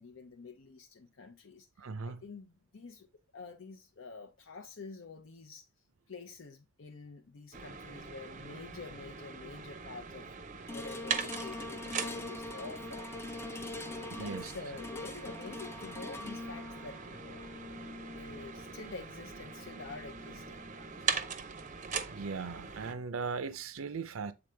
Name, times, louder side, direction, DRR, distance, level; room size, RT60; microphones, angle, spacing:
voice 1, 0.0-3.1 3.3-5.7 6.1-13.4 13.9-17.5 18.1-20.7, left 4 dB, 65° left, 0.6 m, -48 dB
voice 2, 1.8-2.2 14.2-14.5 22.1-24.3, right 5 dB, 85° right, 0.5 m, -38 dB
sound 1, 7.5-22.9, right 6 dB, 35° right, 0.6 m, -41 dB
sound 2, 10.7-21.1 21.6-21.7, left 2 dB, 10° left, 0.4 m, -44 dB
7.9 x 3.8 x 3.3 m
head